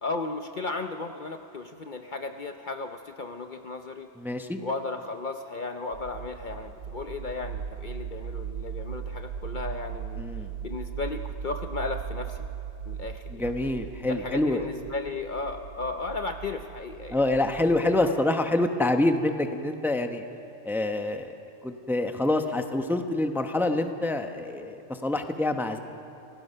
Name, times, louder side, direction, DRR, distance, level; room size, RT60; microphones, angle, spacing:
voice 1, 0.0-4.1 4.6-10.3 10.6-12.5 12.9-13.5 14.1-17.2, left 3 dB, 50° left, 6 dB, 0.8 m, -35 dB
voice 2, 4.2-4.6 10.2-10.5 13.4-14.6 17.1-20.2 20.6-21.3 21.6-25.8, left 2 dB, ahead, 6 dB, 0.8 m, -26 dB
sound 1, 5.9-18.1, right 8 dB, 75° right, 0.9 m, -38 dB
29.5 x 16.5 x 5.6 m, 2.7 s
omnidirectional pair, 1.2 m